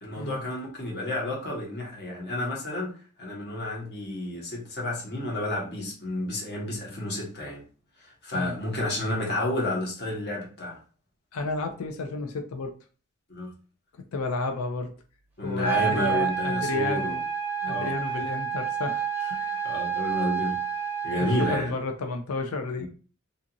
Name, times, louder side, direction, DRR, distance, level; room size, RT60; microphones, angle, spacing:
voice 1, 0.0-7.6 8.0-10.8 13.3-13.5 15.4-17.2 17.6-17.9 19.6-20.6 21.0-21.7 22.8-22.9, left 1 dB, 50° left, 1.0 m, -31 dB
voice 2, 11.3-12.7 14.1-14.9 15.4-17.2 17.6-19.7 21.2-22.9, left 3 dB, 75° left, 0.4 m, -32 dB
sound 1, 15.6-21.6, right 8 dB, 10° right, 0.7 m, -29 dB
2.8 x 2.5 x 2.6 m
head